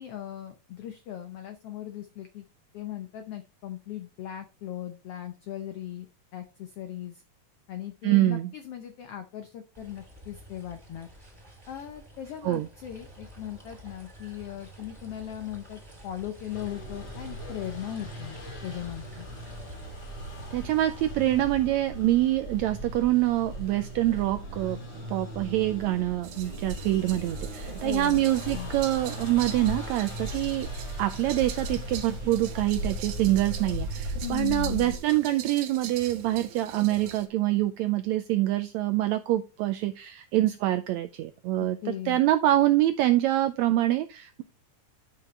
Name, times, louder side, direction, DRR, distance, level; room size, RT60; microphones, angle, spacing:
voice 1, 0.0-2.4 2.7-6.1 6.3-7.2 7.7-11.1 11.7-19.3 27.8-28.2 28.5-28.7 34.2-34.9 41.6-42.2, left 11 dB, 80° left, 8 dB, 1.3 m, -38 dB
voice 2, 8.0-8.5 12.4-12.7 20.5-24.8 25.1-30.7 31.0-44.4, right 15 dB, 90° right, 10 dB, 1.6 m, -25 dB
sound 1, 9.7-21.1, right 1 dB, 10° right, 2.1 m, -49 dB
sound 2, 16.5-35.0, right 1 dB, 50° left, 5.0 m, -37 dB
sound 3, 26.2-37.3, right 10 dB, 75° right, 2.1 m, -43 dB
11.0 x 5.8 x 3.2 m, 0.31 s
omnidirectional pair, 3.7 m